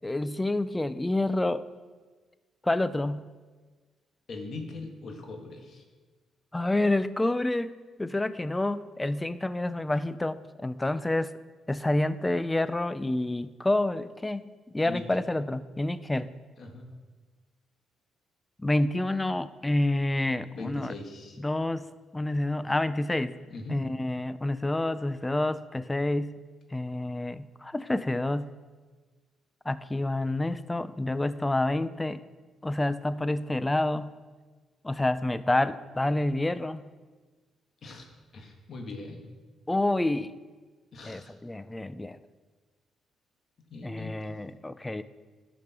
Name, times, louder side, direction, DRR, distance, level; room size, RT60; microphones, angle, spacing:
voice 1, 0.0-1.7 2.6-3.3 6.5-11.3 11.7-16.3 18.6-20.9 21.4-23.4 23.7-26.4 26.7-28.5 29.7-32.2 32.6-34.2 34.8-36.8 39.7-40.3 41.0-42.2 43.8-45.0, left 2 dB, 15° left, 15 dB, 0.4 m, -28 dB
voice 2, 4.3-5.8 14.8-15.2 16.6-16.9 20.5-21.4 23.5-23.8 37.8-38.1 38.3-39.2 40.9-41.3 43.7-44.3, left 3 dB, 55° left, 3 dB, 1.7 m, -41 dB
12.0 x 5.1 x 5.9 m, 1.4 s
cardioid pair, 90°, 0 cm